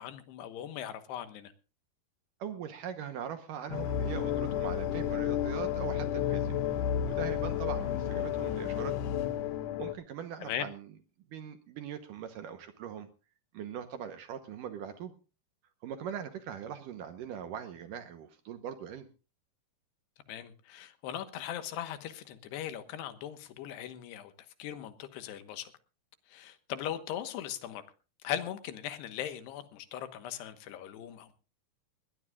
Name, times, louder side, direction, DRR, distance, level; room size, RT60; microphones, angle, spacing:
voice 1, 0.0-1.5 10.4-10.7 20.3-24.3 24.6-25.7 26.3-27.8 28.2-31.3, left 10 dB, 85° left, 3.3 m, -39 dB
voice 2, 2.4-6.6 7.1-9.0 9.8-10.9 11.3-13.1 13.5-15.1 15.8-19.1, right 8 dB, 70° right, 2.2 m, -41 dB
sound 1, 3.7-9.9, left 10 dB, 70° left, 2.2 m, -32 dB
21.5 x 17.5 x 2.4 m
omnidirectional pair, 4.7 m